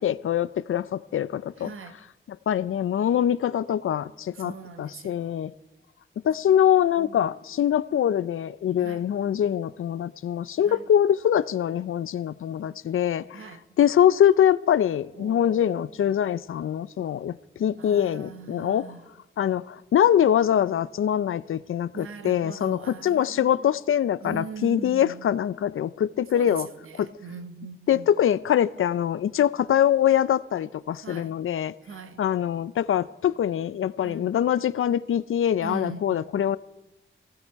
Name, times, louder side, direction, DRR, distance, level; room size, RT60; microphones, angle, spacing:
voice 1, 0.0-1.7 2.3-4.5 4.8-5.5 6.2-13.4 13.8-18.8 19.4-26.7 27.0-27.1 27.9-31.7 32.2-36.6, left 10 dB, 80° left, 0.5 m, -23 dB
voice 2, 1.6-2.0 4.3-5.3 7.0-7.2 8.8-9.0 10.6-10.8 13.3-13.6 15.1-16.0 17.8-19.1 21.9-23.7 24.2-25.3 26.3-28.1 31.0-31.4 31.8-32.2 34.0-34.5 35.6-36.5, right 5 dB, 80° right, 1.0 m, -41 dB
19.0 x 15.5 x 4.6 m
wide cardioid pair, 140°, 21 cm